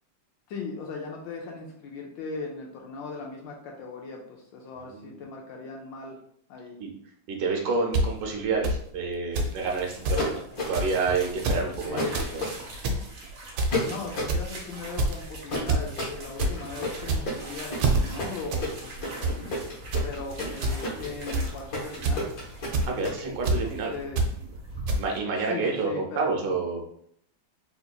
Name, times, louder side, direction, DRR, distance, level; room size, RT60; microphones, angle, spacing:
voice 1, 0.5-6.2 6.5-6.8 11.9-12.4 13.8-19.6 20.0-22.3 23.6-24.2 25.4-26.6, left 4 dB, 75° left, 1 dB, 1.1 m, -38 dB
voice 2, 4.8-5.2 6.8-6.9 7.3-10.4 10.7-12.4 20.4-20.5 22.8-23.9 25.0-26.8, right 4 dB, 70° right, 0 dB, 1.3 m, -29 dB
sound 1, 7.9-8.0 8.6-8.8 9.4-9.5 9.8-9.9 10.1-10.2 10.7-11.0 11.3-11.6 12.0-12.3 12.7-13.0 13.6-13.9 14.3-14.6 15.0-15.2 15.7-15.8 16.2-16.5 17.0-17.4 17.8-18.0 18.5-18.7 19.0-19.3 19.9-20.1 20.6-20.7 21.3-21.6 22.0-22.3 22.7-22.9 23.4-23.6 24.2-24.3 24.9-25.0, right 2 dB, 85° right, 1.5 m, -25 dB
sound 2, 9.6-25.0, right 2 dB, 55° right, 1.0 m, -42 dB
sound 3, 10.2-11.0 12.0-12.5 13.7-14.4 15.5-23.2, left 2 dB, 50° left, 1.3 m, -31 dB
4.3 x 2.7 x 2.2 m, 0.67 s
omnidirectional pair, 2.4 m